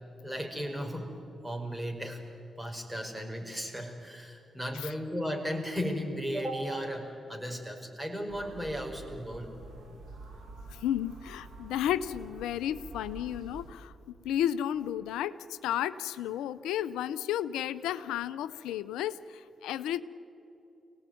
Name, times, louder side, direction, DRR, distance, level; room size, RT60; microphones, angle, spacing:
voice 1, 0.2-1.1 1.4-2.2 2.6-9.5, equal, 10° right, 3 dB, 5.2 m, -35 dB
sound 1, 8.3-13.7, right 3 dB, 80° right, 3.7 m, -48 dB
voice 2, 10.7-13.9 14.2-20.0, left 11 dB, 90° left, 14 dB, 0.5 m, -33 dB
24.5 x 18.0 x 9.3 m, 2.8 s
supercardioid pair, 45°, 0 cm